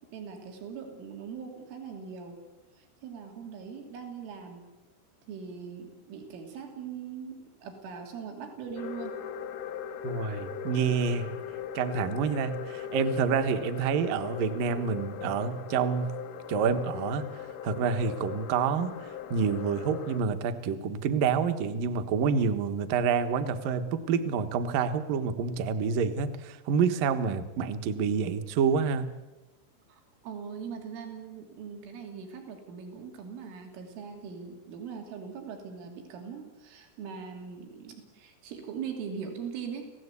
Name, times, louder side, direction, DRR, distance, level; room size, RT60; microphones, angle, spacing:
voice 1, 0.1-2.4 2.8-4.7 5.3-9.2 29.9-39.9, right 6 dB, 85° right, 3 dB, 5.5 m, -41 dB
sound 1, 8.8-20.2, left 8 dB, 90° left, 4.0 m, -39 dB
voice 2, 10.0-11.3 11.7-16.1 16.5-17.3 17.6-29.1, right 6 dB, 65° right, 9 dB, 2.4 m, -28 dB
29.0 x 17.0 x 8.3 m, 1.1 s
omnidirectional pair, 5.4 m